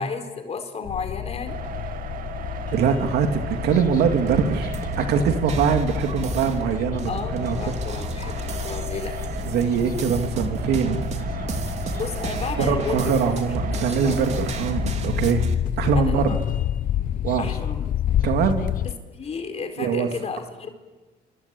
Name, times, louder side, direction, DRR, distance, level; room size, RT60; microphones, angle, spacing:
voice 1, 0.0-1.6 7.1-9.1 11.9-13.1 13.7-14.2 15.9-16.4 17.4-17.8 18.8-20.7, left 5 dB, 40° left, 5 dB, 4.4 m, -33 dB
sound 1, 0.8-18.9, left 11 dB, 55° left, 1.0 m, -30 dB
sound 2, 1.5-15.5, right 7 dB, 55° right, 2.5 m, -37 dB
voice 2, 2.7-7.6 9.5-11.0 12.6-15.5 15.8-16.4 17.2-17.5 18.2-18.6 19.8-20.1, right 6 dB, 75° right, 5 dB, 2.5 m, -23 dB
sound 3, 4.0-15.5, right 4 dB, 40° right, 3.0 m, -32 dB
28.0 x 25.0 x 8.4 m, 1.2 s
cardioid pair, 110°, 17 cm